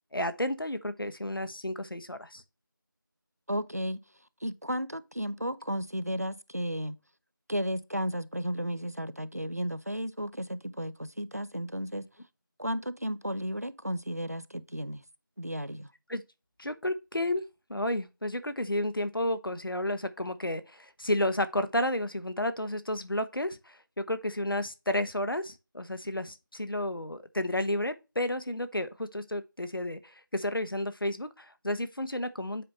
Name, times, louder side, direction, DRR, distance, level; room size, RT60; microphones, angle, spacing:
voice 1, 0.1-2.4 16.1-16.2 16.6-17.4 17.7-32.6, left 1 dB, 85° left, 1.0 m, -32 dB
voice 2, 3.5-4.0 4.4-7.0 7.5-12.1 12.6-15.0 15.4-15.9, equal, 45° right, 0.5 m, -33 dB
7.6 x 5.3 x 3.1 m
figure-of-eight pair, 180°, 11 cm